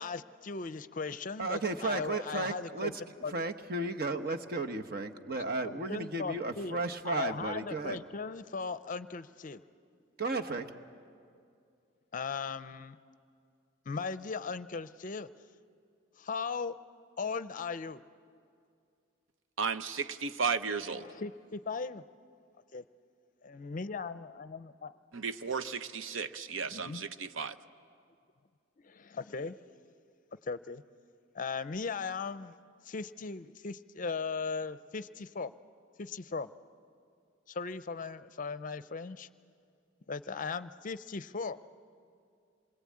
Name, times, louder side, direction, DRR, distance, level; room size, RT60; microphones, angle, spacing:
voice 1, 0.0-2.9 3.2-3.3 5.6-9.6 12.1-13.0 13.9-15.3 16.2-16.7 17.2-18.0 21.0-22.0 22.7-22.8 23.4-25.0 26.7-27.0 28.8-29.5 30.5-30.8 31.3-32.5 32.8-35.5 36.0-36.5 37.5-39.3 40.1-41.6, left 4 dB, 45° left, 14 dB, 0.5 m, -38 dB
voice 2, 1.4-2.9 3.3-8.0 10.2-10.6, right 2 dB, 50° right, 5 dB, 1.1 m, -34 dB
voice 3, 19.6-21.0 25.1-27.6, right 5 dB, 85° right, 11 dB, 0.7 m, -34 dB
27.0 x 22.0 x 8.6 m, 2.3 s
head